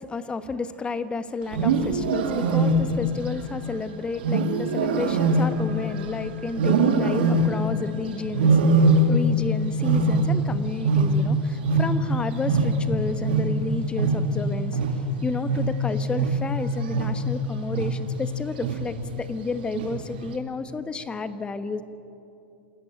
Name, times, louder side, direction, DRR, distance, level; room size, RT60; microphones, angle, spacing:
voice 1, 0.1-8.6 9.1-14.8 15.2-21.8, left 4 dB, 20° left, 11 dB, 1.2 m, -31 dB
Wild animals, 1.4-3.1 4.2-6.1 6.5-7.7 8.3-9.4 9.7-12.2 12.4-17.3 17.7-18.2 18.6-19.0 19.7-20.2, right 2 dB, 70° right, 2.2 m, -22 dB
28.0 x 13.5 x 9.0 m, 2.8 s
hypercardioid pair, 95°, 6 cm